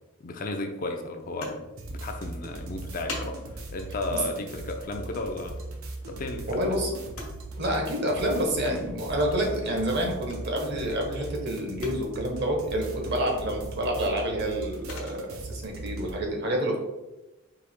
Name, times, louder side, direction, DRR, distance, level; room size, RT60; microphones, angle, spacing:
voice 1, 0.2-5.5 6.1-6.5, left 2 dB, 40° left, 4 dB, 0.4 m, -34 dB
sound 1, 1.2-16.0, left 2 dB, 85° left, 1.1 m, -47 dB
sound 2, 1.8-16.2, right 2 dB, 75° right, 0.7 m, -39 dB
voice 2, 6.5-6.9 7.6-15.2 15.5-16.8, right 1 dB, 50° right, 1 dB, 0.9 m, -28 dB
4.6 x 2.9 x 3.5 m, 1.0 s
head